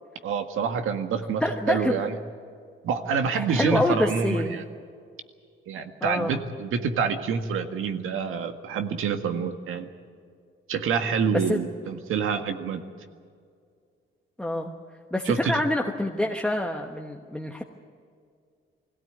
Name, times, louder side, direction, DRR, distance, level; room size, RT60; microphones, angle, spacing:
voice 1, 0.2-1.4 1.7-2.2 2.8-4.6 5.7-9.9 10.7-12.8 15.3-15.6, right 6 dB, 90° right, 7 dB, 1.8 m, -27 dB
voice 2, 1.4-2.1 3.3-4.5 6.0-6.4 11.3-11.6 14.4-14.7 15.1-17.6, left 1 dB, 5° left, 1 dB, 1.2 m, -26 dB
22.0 x 17.0 x 9.4 m, 2.2 s
cardioid pair, 135°, 21 cm